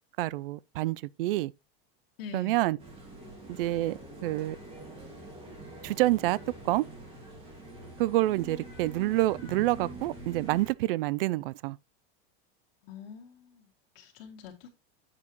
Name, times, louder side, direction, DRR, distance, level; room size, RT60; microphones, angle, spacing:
voice 1, 0.2-1.5 2.3-2.8 3.5-4.6 5.8-6.4 6.6-6.8 8.0-11.8, right 17 dB, 65° right, 0.5 m, -28 dB
voice 2, 2.2-2.8 12.8-14.8, left 7 dB, 75° left, 2.3 m, -46 dB
sound 1, 2.8-10.7, right 2 dB, 20° right, 2.4 m, -45 dB
8.5 x 7.2 x 3.0 m
supercardioid pair, 170°, 30 cm